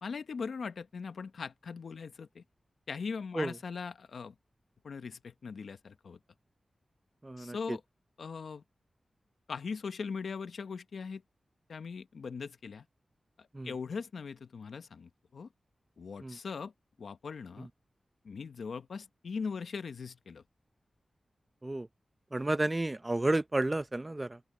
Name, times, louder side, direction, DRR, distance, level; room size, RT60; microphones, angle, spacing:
voice 1, 0.0-2.4 2.9-4.3 4.8-6.2 7.4-7.8 8.2-8.6 9.5-11.2 11.7-12.8 13.4-15.5 16.0-16.7 17.0-17.7 18.2-20.4, left 5 dB, 85° left, 1.0 m, -40 dB
voice 2, 7.2-7.8 13.5-13.7 16.2-16.4 17.6-17.7 21.6-21.9 22.3-24.4, right 2 dB, 25° right, 0.6 m, -32 dB
open air
wide cardioid pair, 65°, 0 cm